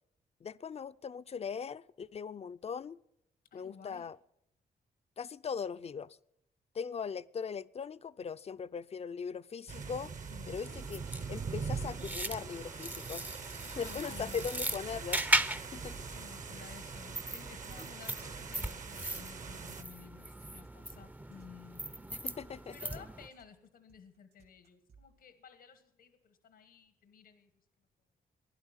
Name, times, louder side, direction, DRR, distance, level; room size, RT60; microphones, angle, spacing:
voice 1, 0.4-3.0 3.5-4.2 5.2-6.2 6.7-10.1 10.5-11.0 11.3-13.2 13.6-15.2 15.7-16.0 22.2-22.8, left 6 dB, 40° left, 0.5 m, -40 dB
voice 2, 3.5-4.1 10.3-10.6 13.6-14.5 16.0-22.1 22.7-27.5, left 7 dB, 85° left, 1.4 m, -54 dB
sound 1, 9.7-19.8, right 5 dB, 50° right, 1.1 m, -42 dB
sound 2, 10.6-23.3, right 1 dB, 10° right, 0.6 m, -38 dB
sound 3, 17.3-25.1, right 5 dB, 70° right, 2.7 m, -61 dB
16.5 x 11.0 x 7.3 m
cardioid pair, 70°, 16 cm